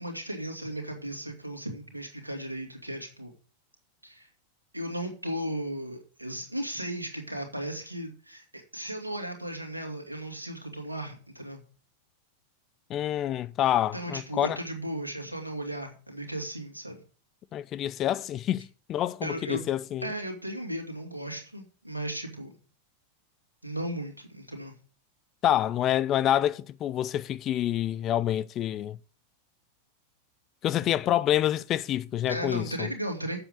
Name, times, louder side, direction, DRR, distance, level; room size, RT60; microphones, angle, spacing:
voice 1, 0.0-3.3 4.0-4.3 4.7-11.6 13.9-17.0 19.2-19.6 20.0-22.6 23.6-24.8 32.3-33.4, right 1 dB, 85° right, 2.3 m, -36 dB
voice 2, 12.9-14.6 17.5-20.1 25.4-29.0 30.6-32.9, left 12 dB, 30° left, 0.5 m, -27 dB
7.8 x 7.1 x 6.5 m
figure-of-eight pair, 90°, 0 cm